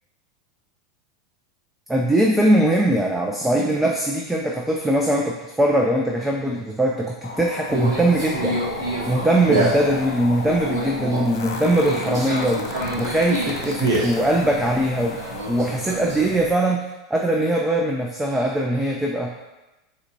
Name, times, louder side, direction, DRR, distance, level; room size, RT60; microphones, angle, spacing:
voice 1, 1.9-8.6 9.1-12.7 13.0-16.8 17.1-19.3, right 1 dB, 5° right, 0 dB, 0.3 m, -21 dB
sound 1, 7.2-16.0, left 5 dB, 75° left, 0.4 m, -35 dB
Conversation, 7.7-16.5, right 2 dB, 65° right, 0.8 m, -28 dB
3.8 x 2.1 x 2.6 m, 1.0 s
hypercardioid pair, 90°, 2 cm